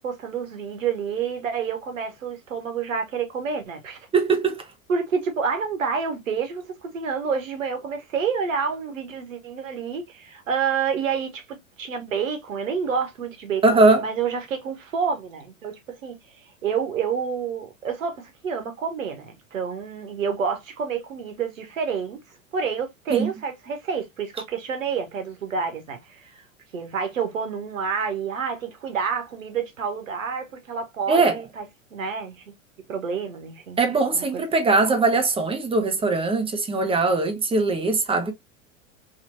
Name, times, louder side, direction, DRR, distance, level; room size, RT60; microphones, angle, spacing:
voice 1, 0.0-4.1 4.9-22.2 22.5-26.4 26.7-31.6 31.9-32.4 32.9-33.8 34.1-34.4, right 6 dB, 75° right, 1.0 m, -28 dB
voice 2, 4.1-4.6 13.6-14.1 23.1-23.3 31.1-31.4 33.8-38.3, right 3 dB, 15° right, 0.8 m, -20 dB
3.0 x 2.9 x 2.5 m
figure-of-eight pair, 85°, 40 cm